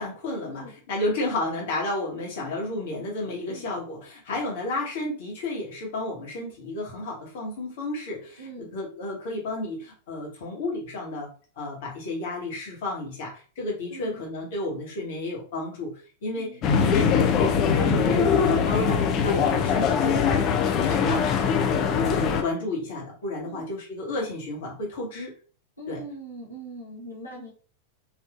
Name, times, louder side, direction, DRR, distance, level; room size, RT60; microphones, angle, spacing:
voice 1, 0.0-11.3 11.6-15.9 16.2-21.8 22.1-25.3 25.9-26.0, left 2 dB, 55° left, -2 dB, 1.2 m, -32 dB
voice 2, 8.4-8.7 13.9-14.2 16.4-16.6 23.4-23.7 25.8-27.5, right 1 dB, 85° left, -6 dB, 0.8 m, -41 dB
sound 1, 16.6-22.4, left 6 dB, 35° left, 0.5 m, -22 dB
3.5 x 2.5 x 2.4 m, 0.40 s
figure-of-eight pair, 90°, 0 cm